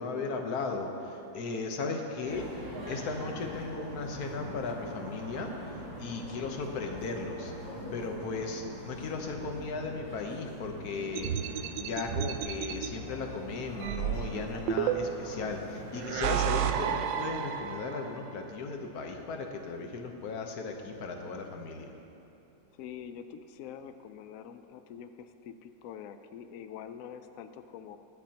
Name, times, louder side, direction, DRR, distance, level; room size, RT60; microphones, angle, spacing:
voice 1, 0.0-7.5 7.9-21.9, left 3 dB, 60° left, 3 dB, 1.4 m, -36 dB
sound 1, 2.2-16.8, equal, 55° right, 3.9 m, -43 dB
sound 2, 11.2-12.9 13.8-15.3 15.9-18.1, right 9 dB, 80° right, 1.2 m, -31 dB
sound 3, 12.4-22.2 22.5-22.6 23.1-23.3, left 3 dB, 45° left, 1.5 m, -53 dB
voice 2, 22.8-28.0, left 8 dB, 90° left, 9 dB, 0.7 m, -45 dB
22.0 x 8.5 x 2.9 m, 2.9 s
omnidirectional pair, 2.0 m